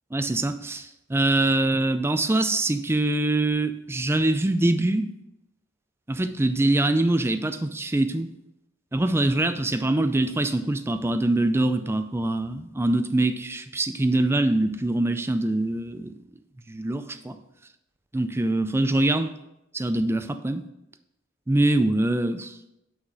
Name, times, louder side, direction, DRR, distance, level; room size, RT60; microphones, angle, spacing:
voice 1, 0.1-5.1 6.1-8.3 8.9-16.1 16.7-17.4 18.1-19.3 19.7-20.6 21.5-22.6, right 2 dB, 10° right, 9 dB, 0.4 m, -24 dB
6.2 x 5.7 x 4.8 m, 0.88 s
head